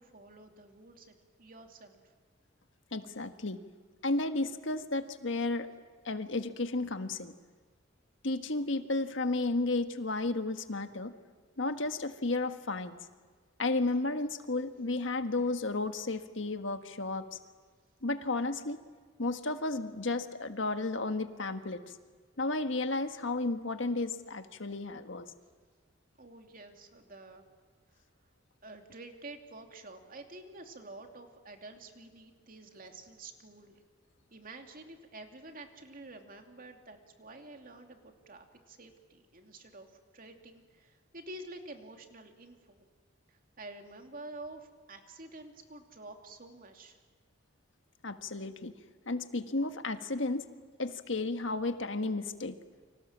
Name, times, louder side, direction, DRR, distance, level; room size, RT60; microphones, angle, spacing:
voice 1, 0.0-2.1 26.2-27.5 27.9-28.0 28.6-33.7 34.3-42.9 43.3-47.0, right 2 dB, 45° right, 4 dB, 2.8 m, -49 dB
voice 2, 2.9-3.6 4.0-5.7 6.0-7.3 8.2-11.1 11.6-13.0 13.6-17.4 18.0-18.8 19.2-21.8 22.4-25.3 48.0-48.7 49.1-50.5 50.8-52.6, left 2 dB, 75° left, 8 dB, 1.6 m, -33 dB
30.0 x 25.0 x 7.5 m, 1.5 s
head